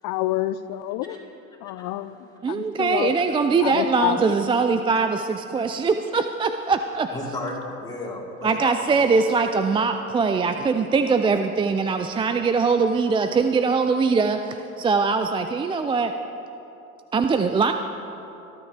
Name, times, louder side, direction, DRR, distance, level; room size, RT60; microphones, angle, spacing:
voice 1, 0.0-1.2 1.6-2.2 2.5-3.1 3.6-4.3, left 15 dB, 55° left, 14 dB, 0.7 m, -27 dB
voice 2, 1.8-2.2 7.1-8.9, left 2 dB, 10° left, -3 dB, 3.2 m, -34 dB
voice 3, 2.4-7.1 8.4-16.1 17.1-17.7, right 4 dB, 15° right, 7 dB, 0.3 m, -22 dB
21.0 x 12.5 x 3.4 m, 2.9 s
hypercardioid pair, 85°, 41 cm